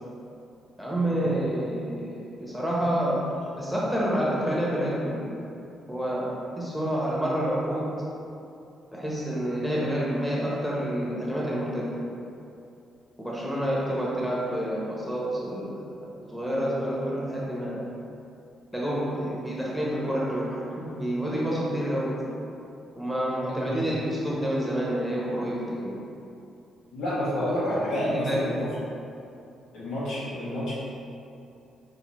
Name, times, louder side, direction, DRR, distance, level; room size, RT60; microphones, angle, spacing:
voice 1, 0.8-5.2 5.9-7.9 8.9-11.9 13.2-15.7 16.3-17.8 18.7-22.1 23.0-25.9 28.0-28.4, equal, 5° left, -6 dB, 1.0 m, -28 dB
voice 2, 26.9-28.7 29.7-30.7, equal, 80° left, -8 dB, 1.3 m, -29 dB
5.5 x 2.9 x 3.1 m, 2.7 s
cardioid pair, 90°, 0 cm